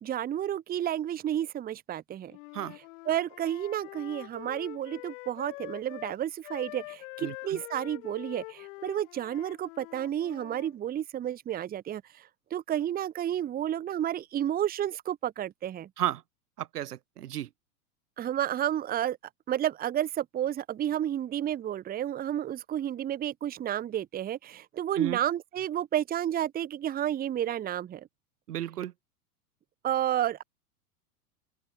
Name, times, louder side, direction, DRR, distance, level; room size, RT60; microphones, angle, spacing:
voice 1, 0.0-2.4 3.1-12.0 12.5-15.9 18.2-19.2 19.5-28.1 29.8-30.4, right 11 dB, 20° right, 0.8 m, -31 dB
Wind instrument woodwind instrument, 2.3-6.2 6.4-10.7, left 25 dB, 60° left, 4.0 m, -45 dB
voice 2, 7.2-7.6 16.0-16.2 16.6-17.5 25.0-25.2 28.5-28.9, right 12 dB, 85° right, 1.4 m, -33 dB
open air
hypercardioid pair, 110°, 45 cm